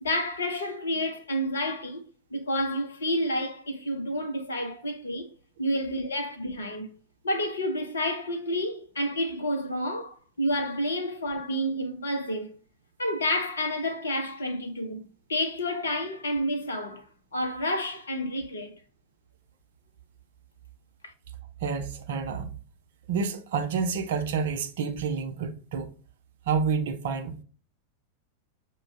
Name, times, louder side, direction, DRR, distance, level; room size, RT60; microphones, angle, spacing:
voice 1, 0.0-2.0 2.3-5.3 5.6-6.9 7.2-12.6 13.0-17.1 17.3-18.8 21.0-21.1, equal, 70° left, 0.7 m, -30 dB
voice 2, 21.6-22.5 23.1-25.9 26.5-27.4, right 5 dB, 55° right, 0.6 m, -29 dB
6.0 x 2.3 x 3.2 m
figure-of-eight pair, 90°, 0 cm